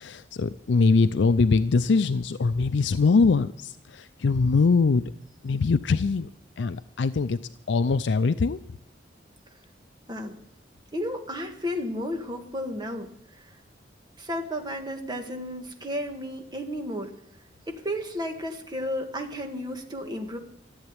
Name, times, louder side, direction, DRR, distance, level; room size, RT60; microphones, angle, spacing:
voice 1, 0.0-5.1 5.4-6.3 6.6-7.4 7.7-8.6, left 4 dB, 80° left, 13 dB, 0.5 m, -22 dB
voice 2, 10.9-13.6 14.2-17.1 17.7-20.4, equal, 25° right, 4 dB, 1.7 m, -33 dB
14.0 x 8.0 x 9.7 m, 0.73 s
head